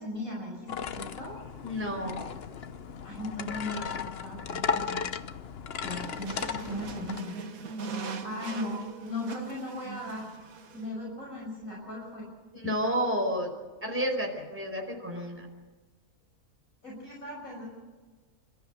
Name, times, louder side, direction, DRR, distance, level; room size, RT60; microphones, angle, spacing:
voice 1, 0.0-1.3 3.0-5.0 5.8-7.4 8.2-10.3 10.7-12.3 16.8-17.6, left 1 dB, 65° left, -2 dB, 6.6 m, -37 dB
sound 1, 0.7-7.2, left 6 dB, 50° left, 1.0 m, -36 dB
voice 2, 1.6-2.2 12.5-13.5 13.8-15.4, equal, 10° right, 1 dB, 4.8 m, -30 dB
sound 2, 5.8-10.9, right 4 dB, 75° right, 1.7 m, -41 dB
28.0 x 14.0 x 8.2 m, 1.3 s
omnidirectional pair, 1.5 m